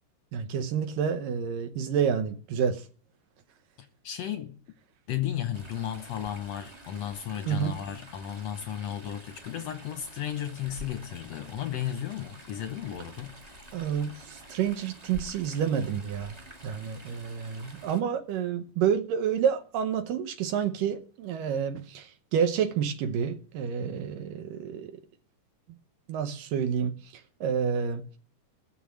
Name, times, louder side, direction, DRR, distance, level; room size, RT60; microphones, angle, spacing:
voice 1, 0.3-2.9 7.5-7.7 13.7-16.4 16.6-25.0 26.1-28.0, right 7 dB, 80° right, 2.6 m, -29 dB
voice 2, 3.8-4.6 5.1-13.3, left 10 dB, 70° left, 1.7 m, -34 dB
Chatter / Stream, 5.5-18.0, equal, 20° right, 1.2 m, -48 dB
17.0 x 7.1 x 7.6 m
omnidirectional pair, 3.8 m